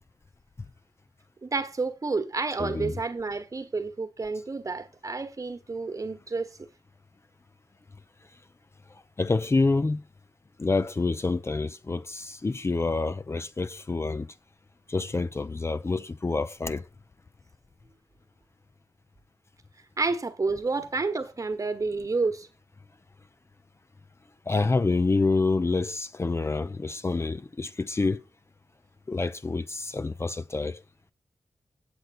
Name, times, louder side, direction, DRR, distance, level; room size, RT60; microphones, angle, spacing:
voice 1, 1.4-6.7 20.0-22.5, right 3 dB, 45° right, 1.3 m, -30 dB
voice 2, 2.6-2.9 9.2-10.0 10.6-14.3 14.9-16.9 24.5-28.2 29.1-30.8, left 3 dB, 35° left, 0.5 m, -27 dB
8.1 x 8.0 x 4.1 m
wide cardioid pair, 100°, 8 cm